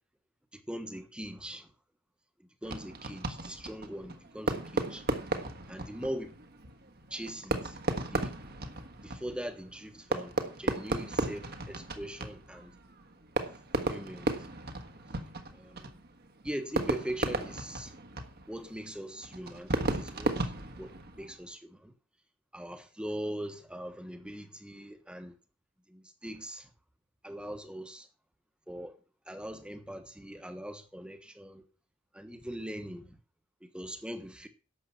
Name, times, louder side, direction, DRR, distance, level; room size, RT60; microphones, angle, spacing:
voice 1, 0.5-1.7 2.6-5.0 5.7-6.4 7.1-7.8 8.1-8.4 9.0-12.7 13.9-14.3 15.5-16.0 16.4-17.9 18.5-20.5 20.8-21.9 22.5-25.3 25.9-26.7 27.2-28.1 28.7-28.9 29.3-31.6 32.1-33.2 33.6-34.5, equal, 5° right, 1.2 m, -41 dB
Fireworks, 2.6-21.4, right 2 dB, 50° right, 1.5 m, -35 dB
11.5 x 7.7 x 5.8 m
head